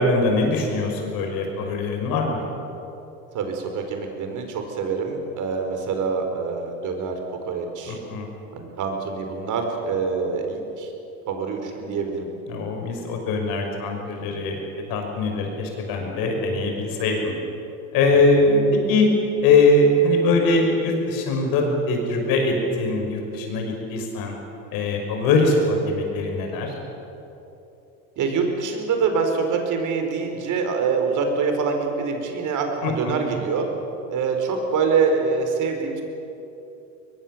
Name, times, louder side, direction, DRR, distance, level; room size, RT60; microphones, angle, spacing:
voice 1, 0.0-2.4 7.9-8.3 12.5-14.6 14.9-17.4 17.9-18.6 18.9-19.1 19.4-24.4 24.7-26.7 32.8-33.2, left 2 dB, 70° left, 2 dB, 6.2 m, -22 dB
voice 2, 3.3-7.2 7.4-8.0 8.5-10.9 11.3-12.3 18.1-18.2 28.2-33.7 34.1-36.0, right 5 dB, 55° right, 4 dB, 5.0 m, -25 dB
22.0 x 21.5 x 7.7 m, 2.9 s
supercardioid pair, 90°, 37 cm